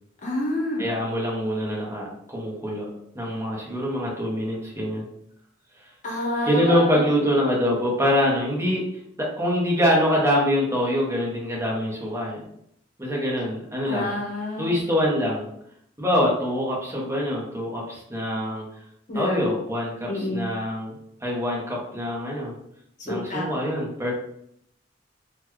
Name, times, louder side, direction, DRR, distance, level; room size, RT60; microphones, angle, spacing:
voice 1, 0.2-0.8 6.0-7.1 13.8-14.7 19.1-19.6 20.1-20.5 23.1-23.5, left 1 dB, 40° left, -2 dB, 0.9 m, -28 dB
voice 2, 0.8-2.9 3.1-5.1 6.5-12.4 13.0-14.1 14.6-15.5 16.0-18.7 19.1-20.9 21.2-22.5 23.1-24.1, equal, 15° right, -3 dB, 0.9 m, -24 dB
4.0 x 2.2 x 3.0 m, 0.72 s
head